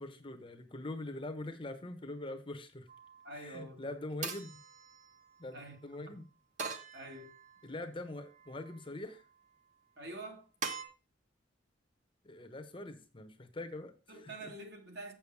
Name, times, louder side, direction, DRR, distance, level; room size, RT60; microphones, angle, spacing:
voice 1, 0.0-2.9 3.3-4.5 5.4-6.2 7.6-9.2 12.2-14.5, left 2 dB, 25° left, 0.9 m, -43 dB
sound 1, 2.9-3.4 4.2-5.6 6.6-7.7 8.2-8.9 10.6-10.8, right 4 dB, 40° right, 1.2 m, -43 dB
voice 2, 3.2-3.9 5.5-5.8 6.1-6.2 6.9-7.3 10.0-10.5 14.1-15.1, right 2 dB, 55° right, 2.0 m, -46 dB
7.7 x 7.1 x 4.7 m
head